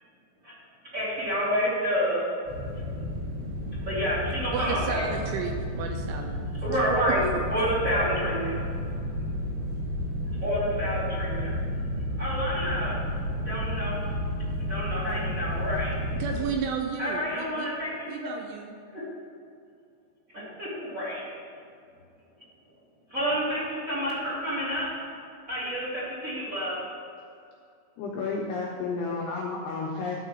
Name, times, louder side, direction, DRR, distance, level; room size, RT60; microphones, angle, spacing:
voice 1, 0.8-2.2 3.8-5.0 6.6-7.2 7.5-8.6 10.4-11.5 12.2-13.0 13.4-14.1 14.6-16.0 17.0-18.3 18.9-19.0 20.3-21.3 23.1-24.9 25.5-26.7, equal, 25° right, -9 dB, 1.8 m, -29 dB
sound 1, 2.5-16.4, equal, 65° right, 4.1 m, -32 dB
voice 2, 4.5-6.4 6.7-6.8 7.1-7.2 16.2-17.7 18.1-18.8, right 6 dB, 85° right, 3 dB, 2.9 m, -32 dB
voice 3, 28.0-30.2, left 4 dB, 85° left, -2 dB, 2.4 m, -31 dB
12.0 x 4.8 x 6.1 m, 2.4 s
omnidirectional pair, 5.9 m